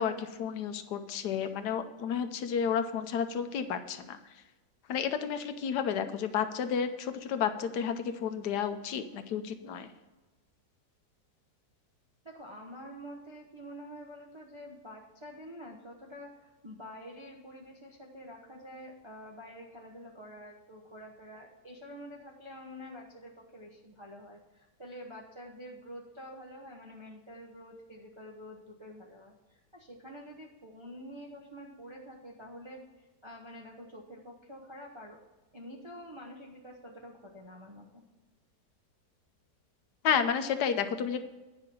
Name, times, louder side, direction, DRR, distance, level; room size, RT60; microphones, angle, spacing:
voice 1, 0.0-4.4 4.9-9.9 40.0-41.2, left 7 dB, 75° left, 9 dB, 1.3 m, -31 dB
voice 2, 12.2-35.2 35.5-38.0, equal, 25° right, -1 dB, 0.8 m, -47 dB
10.0 x 5.7 x 5.6 m, 1.2 s
omnidirectional pair, 1.8 m